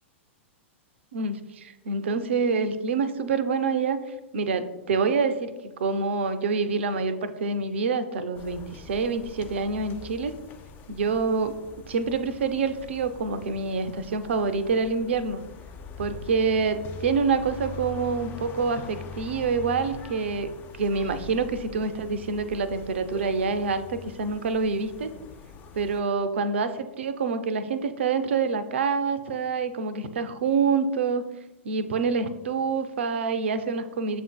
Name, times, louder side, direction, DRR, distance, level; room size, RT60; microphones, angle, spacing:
voice 1, 1.1-4.0 4.3-10.3 10.9-11.6 11.9-15.4 16.0-20.5 20.8-25.1 25.7-31.3 31.6-34.2, right 4 dB, 65° right, 11 dB, 0.4 m, -26 dB
sound 1, 8.3-26.0, left 5 dB, 25° left, 0.3 m, -43 dB
7.0 x 2.5 x 2.2 m, 1.1 s
figure-of-eight pair, 100°, 7 cm